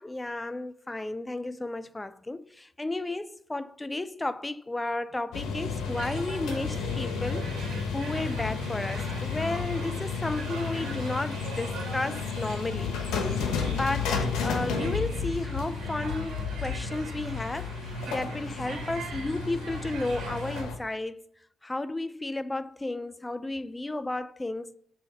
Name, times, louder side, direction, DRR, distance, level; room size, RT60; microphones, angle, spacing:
voice 1, 0.0-7.5 7.9-13.0 13.2-14.1 14.4-17.7 18.1-21.3 21.6-24.8, left 2 dB, 15° left, 0.3 m, -33 dB
sound 1, 5.3-20.8, left 5 dB, 85° left, 1.0 m, -32 dB
sound 2, 5.8-20.6, right 4 dB, 65° right, 1.6 m, -43 dB
6.9 x 3.0 x 5.0 m
cardioid pair, 90°, 0 cm